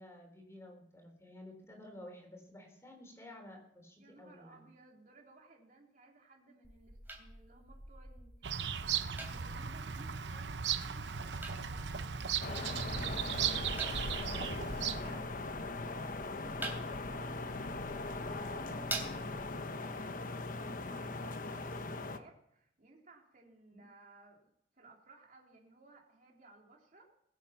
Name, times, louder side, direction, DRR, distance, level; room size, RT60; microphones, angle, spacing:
voice 1, 0.0-4.6 14.2-15.3 23.7-23.8, left 1 dB, 15° left, 3 dB, 3.8 m, -52 dB
voice 2, 4.0-13.3 15.9-27.1, right 2 dB, 50° right, 0 dB, 3.3 m, -60 dB
sound 1, 6.6-19.6, right 2 dB, 10° right, 3.3 m, -48 dB
Bird vocalization bird call bird song, 8.4-15.2, right 8 dB, 80° right, 0.8 m, -37 dB
sound 2, 12.4-22.2, left 3 dB, 50° left, 1.1 m, -40 dB
21.5 x 8.5 x 5.9 m, 0.73 s
head